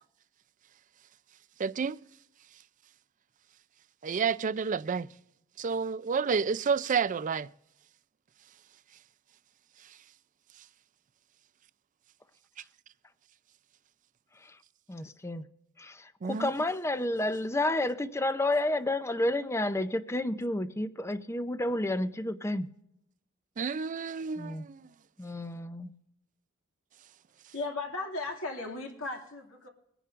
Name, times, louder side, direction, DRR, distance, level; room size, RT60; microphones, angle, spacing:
voice 1, 1.6-2.0 4.0-5.1 5.6-7.5 16.2-16.5 23.6-24.9, right 6 dB, 40° right, 0.4 m, -30 dB
voice 2, 14.9-15.4 15.8-22.7 24.4-24.6 25.2-25.9, left 1 dB, 15° left, 0.6 m, -30 dB
voice 3, 27.5-29.7, left 3 dB, 80° left, 2.3 m, -36 dB
23.0 x 10.0 x 2.5 m
head